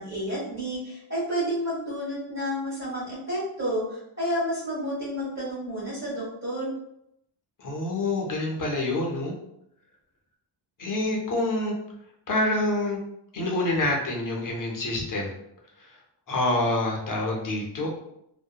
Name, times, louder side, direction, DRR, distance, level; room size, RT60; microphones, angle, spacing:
voice 1, 0.0-6.7, equal, 30° right, -7 dB, 1.2 m, -30 dB
voice 2, 7.6-9.3 10.8-11.7 12.3-13.0 13.3-15.3 16.3-17.9, left 2 dB, 40° left, -1 dB, 0.5 m, -27 dB
2.7 x 2.1 x 2.3 m, 0.77 s
wide cardioid pair, 175°, 49 cm